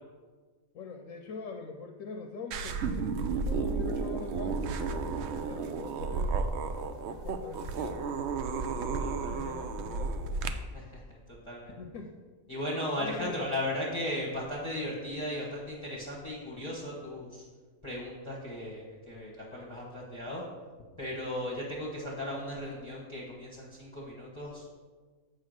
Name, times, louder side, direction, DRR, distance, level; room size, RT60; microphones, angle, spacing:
voice 1, 0.7-8.0 8.8-10.1 11.8-12.1 13.0-13.4, left 4 dB, 75° left, 4 dB, 1.0 m, -43 dB
sound 1, 2.5-10.5, right 4 dB, 65° right, 0.8 m, -32 dB
voice 2, 9.0-9.5 10.7-11.7 12.5-17.4 17.8-20.4 21.0-24.7, left 1 dB, 20° left, -5 dB, 1.2 m, -36 dB
8.2 x 3.8 x 6.4 m, 1.5 s
omnidirectional pair, 1.4 m